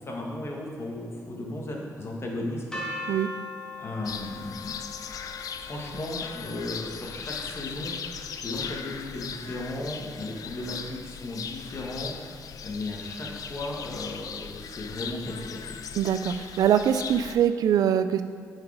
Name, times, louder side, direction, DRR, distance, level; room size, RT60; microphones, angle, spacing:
voice 1, 0.0-2.9 3.8-4.8 5.6-12.1 12.6-15.8, left 1 dB, 45° left, -1 dB, 1.5 m, -35 dB
sound 1, 2.7-8.6, left 2 dB, 10° left, 1.8 m, -41 dB
sound 2, 4.0-17.3, left 7 dB, 70° left, 0.4 m, -38 dB
voice 2, 15.9-18.2, right 9 dB, 85° right, 10 dB, 0.4 m, -23 dB
8.1 x 4.9 x 4.8 m, 2.1 s
cardioid pair, 80°, 6 cm